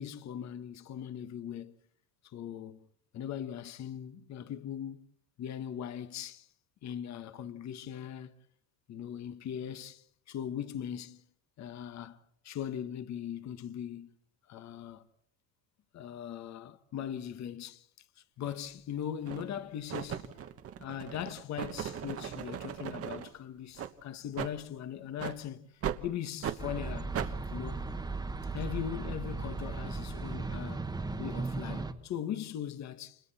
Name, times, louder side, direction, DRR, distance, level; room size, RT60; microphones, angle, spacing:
voice 1, 0.0-1.7 2.2-2.9 3.1-5.1 5.4-6.5 6.8-8.3 8.9-11.2 11.6-12.2 12.4-14.1 14.5-15.0 15.9-17.9 18.4-20.4 20.8-27.8 28.5-30.9 31.2-33.2, left 9 dB, 40° left, 1.3 m, -40 dB
sound 1, 18.4-18.6 19.2-19.6 19.9-23.3 23.8-23.9 24.3-24.5 25.2-25.4 25.8-26.0 26.4-26.6 27.1-27.3, right 9 dB, 35° right, 1.3 m, -37 dB
sound 2, 26.6-31.9, right 3 dB, 10° right, 1.3 m, -36 dB
30.0 x 29.0 x 4.2 m
cardioid pair, 155°, 43 cm